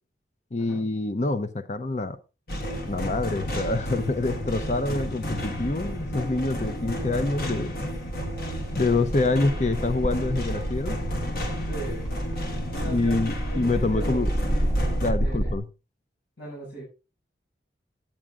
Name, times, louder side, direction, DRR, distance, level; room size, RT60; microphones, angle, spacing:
voice 1, 0.5-2.2 2.9-7.7 8.7-11.0 12.9-14.3 15.0-15.7, left 2 dB, 40° left, 0.6 m, -26 dB
sound 1, 2.5-15.1, equal, 55° left, 1.7 m, -31 dB
sound 2, 9.5-15.6, right 1 dB, 25° left, 2.3 m, -30 dB
voice 2, 11.6-12.0 12.8-13.2 13.4-14.3 15.2-15.5 16.4-16.8, right 1 dB, 70° left, 5.6 m, -38 dB
10.5 x 8.8 x 3.6 m
head